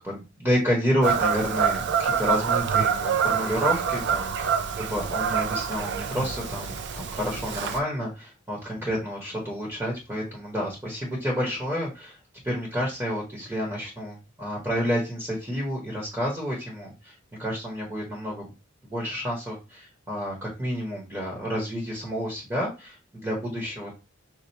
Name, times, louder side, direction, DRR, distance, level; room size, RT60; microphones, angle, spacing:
voice 1, 0.0-4.3 4.8-12.2 12.4-18.5 18.8-23.9, equal, 10° right, -3 dB, 0.9 m, -29 dB
Fowl / Bird vocalization bird call bird song, 1.0-7.8, right 7 dB, 55° right, 0.4 m, -26 dB
4.3 x 2.4 x 2.7 m, 0.28 s
head